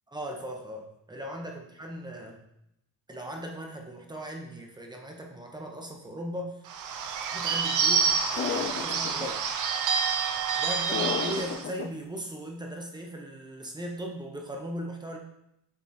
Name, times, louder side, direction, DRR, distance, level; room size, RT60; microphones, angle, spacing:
voice 1, 0.1-2.4 3.1-6.7 7.3-9.6 10.2-15.2, equal, 10° right, 1 dB, 0.8 m, -38 dB
Bird / Bell, 6.7-11.6, right 6 dB, 55° right, 0.8 m, -28 dB
sound 1, 8.4-9.3 10.9-11.9, left 7 dB, 35° left, 0.5 m, -32 dB
7.3 x 3.6 x 4.2 m, 0.79 s
cardioid pair, 145°, 36 cm